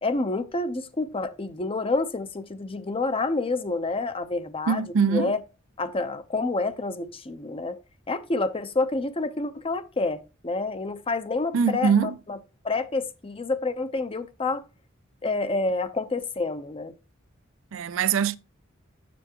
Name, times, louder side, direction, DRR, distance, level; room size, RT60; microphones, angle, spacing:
voice 1, 0.0-5.4 5.8-7.8 8.1-12.4 12.6-14.6 15.2-16.9, left 3 dB, 30° left, 0.7 m, -28 dB
voice 2, 4.7-5.3 11.5-12.1 17.7-18.4, right 6 dB, 70° right, 0.5 m, -22 dB
7.6 x 7.0 x 2.9 m
head